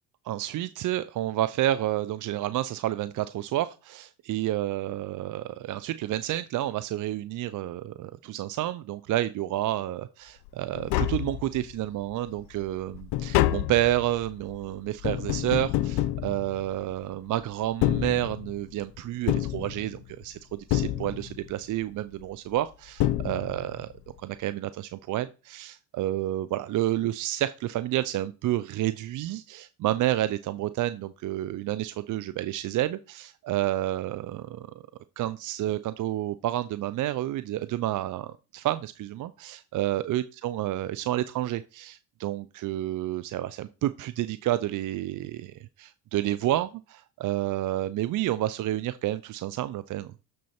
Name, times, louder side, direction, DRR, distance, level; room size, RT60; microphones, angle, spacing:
voice 1, 0.3-23.9 24.2-34.7 35.2-50.1, right 14 dB, 45° right, 0.5 m, -30 dB
Tap, 10.5-10.6 10.7-11.9 12.3-17.0 17.6-18.7 19.3-20.2 20.7-21.5 22.6-22.7 23.0-23.8 24.1-24.2, left 14 dB, 65° left, 0.8 m, -28 dB
6.8 x 6.3 x 4.3 m
supercardioid pair, 80°, 43 cm